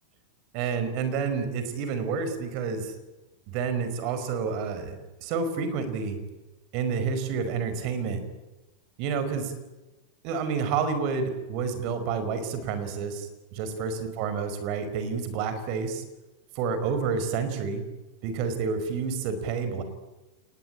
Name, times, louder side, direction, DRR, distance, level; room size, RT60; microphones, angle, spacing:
voice 1, 0.5-2.9 3.5-6.2 6.7-8.2 9.0-9.5 10.2-16.0 16.5-17.8 18.2-19.8, right 5 dB, 45° right, 9 dB, 5.0 m, -29 dB
28.5 x 20.5 x 9.1 m, 1.1 s
figure-of-eight pair, 90°, 0 cm